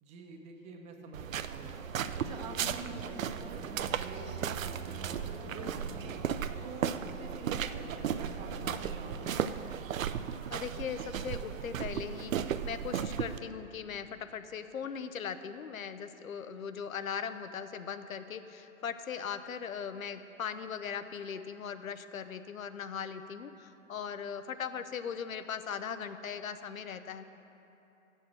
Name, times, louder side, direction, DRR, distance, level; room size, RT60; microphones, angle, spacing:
voice 1, 0.0-1.7 2.1-6.2 6.6-9.5, right 3 dB, 15° right, 2 dB, 0.7 m, -47 dB
sound 1, 1.1-13.4, right 9 dB, 75° right, 0.5 m, -35 dB
sound 2, 1.6-11.0 11.3-11.4, left 3 dB, 35° left, 1.4 m, -49 dB
voice 2, 10.5-27.2, left 7 dB, 80° left, 11 dB, 0.6 m, -39 dB
7.3 x 6.3 x 7.6 m, 2.9 s
figure-of-eight pair, 120°, 40 cm